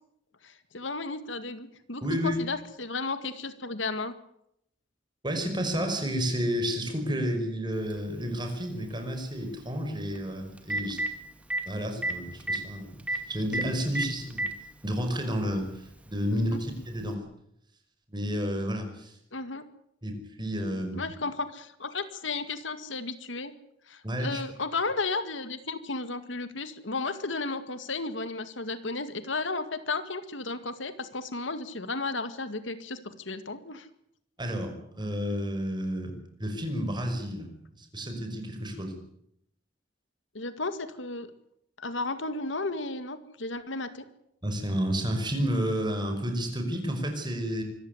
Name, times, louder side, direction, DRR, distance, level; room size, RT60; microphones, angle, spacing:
voice 1, 0.4-4.1 16.3-16.6 19.3-19.6 20.9-23.5 23.9-33.9 40.3-41.3 41.8-44.1, left 3 dB, 90° left, 11 dB, 2.0 m, -34 dB
voice 2, 2.0-2.4 5.2-11.0 11.6-14.5 14.8-17.2 18.1-19.2 20.0-21.0 24.0-24.4 34.4-38.9 44.4-47.6, equal, 25° right, 5 dB, 5.6 m, -31 dB
Telephone, 7.9-8.0 10.2-10.3 10.6-11.1 11.5-11.6 12.0-12.1 12.4-12.6 13.1-13.2 13.5-13.6 14.0-14.5 15.5-15.6 17.1-17.2, right 1 dB, 5° right, 2.2 m, -28 dB
25.0 x 14.5 x 9.7 m, 0.75 s
head